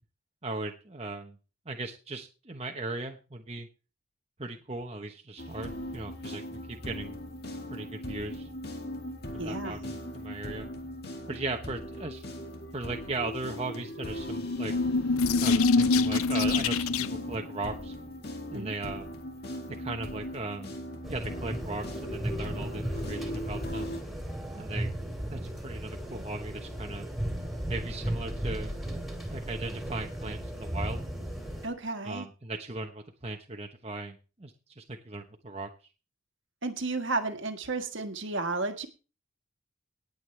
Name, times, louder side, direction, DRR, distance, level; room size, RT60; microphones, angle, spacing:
voice 1, 0.4-1.4 1.7-3.7 4.4-7.2 7.7-8.5 9.3-10.7 11.3-12.2 12.7-14.7 15.4-17.9 18.5-19.1 19.8-20.7 21.1-24.0 24.5-24.9 25.3-27.1 27.7-28.7 29.3-31.0 32.0-35.7, right 2 dB, 30° right, 3 dB, 1.0 m, -38 dB
sound 1, 5.4-24.0, equal, 50° left, 2.4 m, -39 dB
voice 2, 9.4-9.9 18.5-18.7 31.6-32.3 36.6-38.9, right 3 dB, 60° right, 7 dB, 1.6 m, -33 dB
sound 2, 14.2-17.3, left 3 dB, 85° left, 0.6 m, -25 dB
sound 3, 21.0-31.7, equal, ahead, 2.7 m, -36 dB
18.5 x 8.0 x 3.3 m, 0.33 s
head